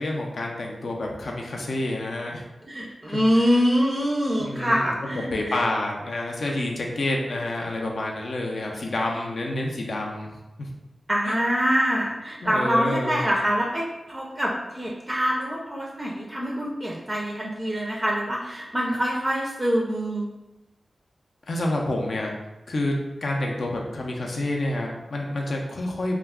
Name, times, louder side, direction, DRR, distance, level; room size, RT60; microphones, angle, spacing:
voice 1, 0.0-2.4 3.1-3.2 4.4-10.7 11.2-11.4 12.4-13.2 21.5-22.3 22.7-26.1, left 1 dB, 70° left, 0 dB, 0.5 m, -28 dB
voice 2, 2.7-5.6 11.1-20.3, equal, 20° right, -3 dB, 0.4 m, -25 dB
2.3 x 2.2 x 3.4 m, 0.99 s
wide cardioid pair, 100°, 0 cm